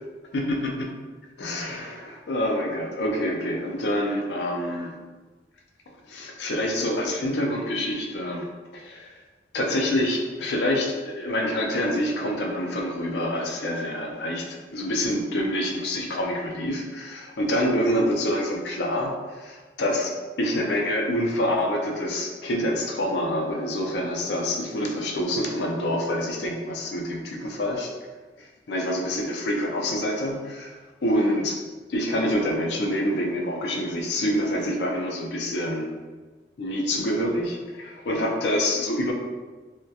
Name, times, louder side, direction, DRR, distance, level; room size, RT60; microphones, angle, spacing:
voice 1, 0.3-0.9 1.4-4.9 6.1-8.5 8.7-9.1 9.5-20.1 20.4-27.9 28.4-31.6 31.9-35.9 36.6-39.1, left 1 dB, 75° left, 1 dB, 0.4 m, -26 dB
2.3 x 2.1 x 2.7 m, 1.3 s
head